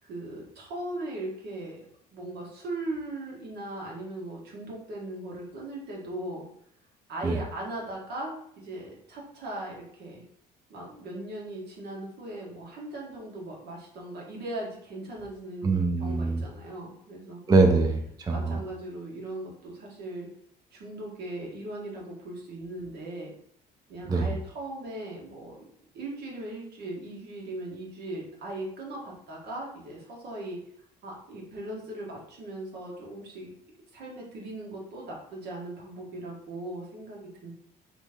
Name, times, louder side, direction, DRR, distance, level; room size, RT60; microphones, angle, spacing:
voice 1, 0.0-1.9 2.1-6.5 7.1-10.2 10.7-17.4 18.3-20.3 20.7-23.3 23.9-25.6 25.9-30.6 31.0-33.5 33.9-37.5, right 1 dB, 75° right, -2 dB, 1.6 m, -38 dB
voice 2, 15.6-16.4 17.5-18.6 24.1-24.3, right 3 dB, 20° right, 4 dB, 0.4 m, -23 dB
4.1 x 3.1 x 3.6 m, 0.70 s
cardioid pair, 110°, 17 cm